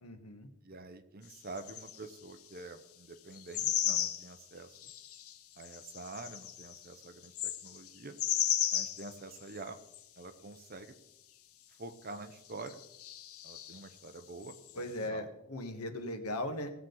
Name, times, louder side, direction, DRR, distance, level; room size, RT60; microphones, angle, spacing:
voice 1, 0.0-0.5 14.8-16.7, left 1 dB, 85° left, 6 dB, 1.5 m, -38 dB
voice 2, 0.6-4.9 5.6-8.2 8.7-9.8 10.2-10.9 11.8-12.8 13.4-15.3, right 3 dB, 45° right, 8 dB, 0.9 m, -47 dB
Birds In The Morning, 1.6-2.0 3.4-4.3 4.8-5.3 5.6-7.9 8.2-9.6 9.9-10.0 12.6-13.8 14.4-14.7, left 11 dB, 70° left, 0.7 m, -35 dB
17.0 x 7.4 x 4.0 m, 0.88 s
head